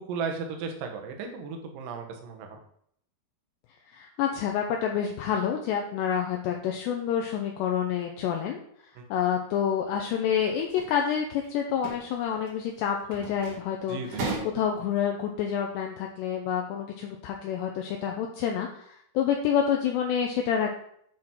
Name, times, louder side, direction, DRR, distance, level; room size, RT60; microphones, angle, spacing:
voice 1, 0.0-2.6 9.0-9.1 13.9-14.3, right 5 dB, 75° right, 3 dB, 2.0 m, -35 dB
voice 2, 3.9-8.6 9.1-20.8, left 8 dB, 80° left, 2 dB, 2.6 m, -28 dB
sound 1, 10.5-10.9 11.3-11.5 11.7-12.0 12.3-12.5 13.1-13.6 14.0-14.6, right 3 dB, 55° right, 2.2 m, -35 dB
8.7 x 5.8 x 4.5 m, 0.68 s
omnidirectional pair, 5.6 m